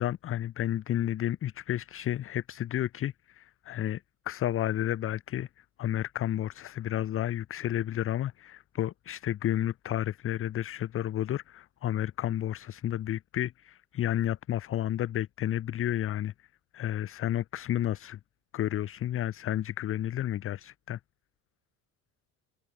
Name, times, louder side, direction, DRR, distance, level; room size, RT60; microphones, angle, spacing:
voice 1, 0.0-16.3 16.7-18.2 18.5-21.0, left 12 dB, 30° left, 0.6 m, -31 dB
supercardioid pair, 90°, 44 cm